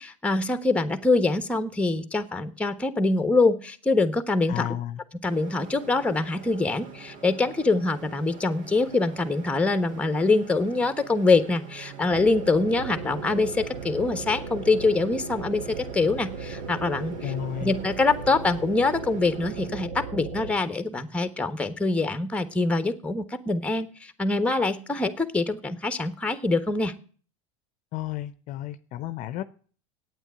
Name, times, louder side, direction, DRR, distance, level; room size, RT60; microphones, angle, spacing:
voice 1, 0.0-4.6 5.2-17.1 17.6-26.9, left 3 dB, 5° left, 1.3 m, -24 dB
voice 2, 4.5-5.0 17.2-17.8 27.9-29.4, left 12 dB, 50° left, 0.8 m, -32 dB
sound 1, 5.2-19.7, right 6 dB, 55° right, 2.5 m, -45 dB
sound 2, 12.1-20.5, right 5 dB, 85° right, 1.7 m, -37 dB
9.0 x 8.9 x 8.4 m
supercardioid pair, 105°, 16 cm